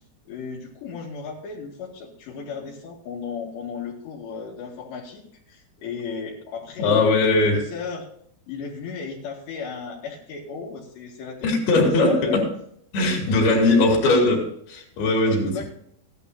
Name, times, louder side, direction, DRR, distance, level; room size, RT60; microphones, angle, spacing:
voice 1, 0.3-8.1 8.5-11.5 12.0-12.5 13.0-13.7 15.2-15.6, left 5 dB, 80° left, 4.3 m, -35 dB
voice 2, 6.8-7.7 11.4-12.5 12.9-15.7, left 2 dB, 65° left, 4.6 m, -20 dB
16.0 x 11.0 x 2.7 m
omnidirectional pair, 4.9 m